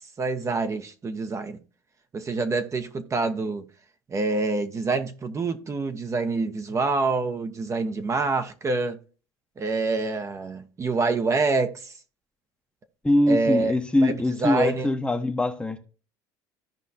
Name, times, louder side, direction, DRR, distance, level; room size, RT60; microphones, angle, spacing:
voice 1, 0.2-1.6 2.1-3.7 4.1-9.0 9.6-11.9 13.3-13.7 14.0-14.9, right 3 dB, 30° right, 1.1 m, -26 dB
voice 2, 13.0-15.8, left 1 dB, 10° left, 1.1 m, -22 dB
15.0 x 5.0 x 2.8 m
supercardioid pair, 95°, 10 cm